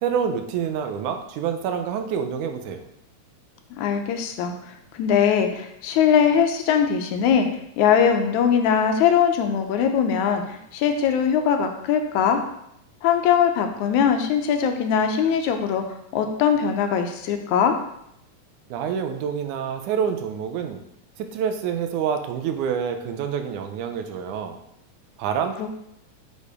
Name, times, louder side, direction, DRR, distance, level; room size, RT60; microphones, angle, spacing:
voice 1, 0.0-2.8 18.7-20.8 21.2-24.6 25.2-25.7, right 7 dB, 90° right, 7 dB, 2.2 m, -27 dB
voice 2, 3.8-4.5 4.9-7.5 7.8-12.4 13.0-15.8 16.1-17.8 25.6-25.7, left 7 dB, 80° left, 6 dB, 2.1 m, -21 dB
6.7 x 5.2 x 4.9 m, 0.76 s
omnidirectional pair, 3.5 m